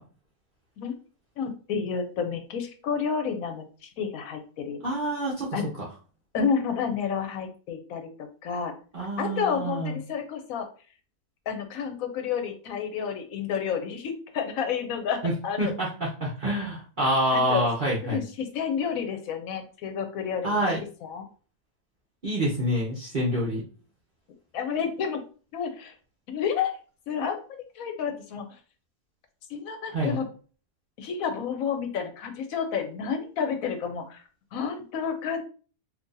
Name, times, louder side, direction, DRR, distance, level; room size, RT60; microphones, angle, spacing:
voice 1, 1.4-4.8 5.5-5.7 6.3-8.7 9.2-10.7 11.5-15.7 17.3-17.7 18.0-20.6 21.0-21.3 24.5-25.2 25.5-25.9 26.3-26.8 27.1-27.4 27.8-28.5 29.5-30.3 31.0-34.2 34.5-35.4, left 6 dB, 75° left, 6 dB, 1.0 m, -30 dB
voice 2, 4.8-5.6 8.9-10.0 15.2-18.2 20.4-20.8 22.2-23.6 29.9-30.2, right 1 dB, 45° right, -6 dB, 0.8 m, -27 dB
2.7 x 2.6 x 3.7 m, 0.38 s
omnidirectional pair, 1.5 m